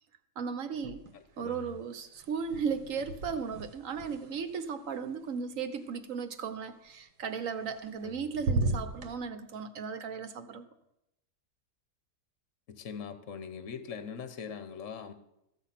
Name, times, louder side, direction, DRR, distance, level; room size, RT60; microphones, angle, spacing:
voice 1, 0.4-1.0 1.4-10.7, right 6 dB, 60° right, 10 dB, 1.2 m, -36 dB
sound 1, 0.7-1.5 1.7-5.8 7.4-8.1 8.3-9.1, right 2 dB, 85° right, 1.8 m, -36 dB
voice 2, 1.1-1.7 8.0-8.4 12.7-15.1, left 6 dB, 55° left, 10 dB, 1.1 m, -42 dB
14.0 x 7.8 x 5.8 m, 0.84 s
omnidirectional pair, 1.7 m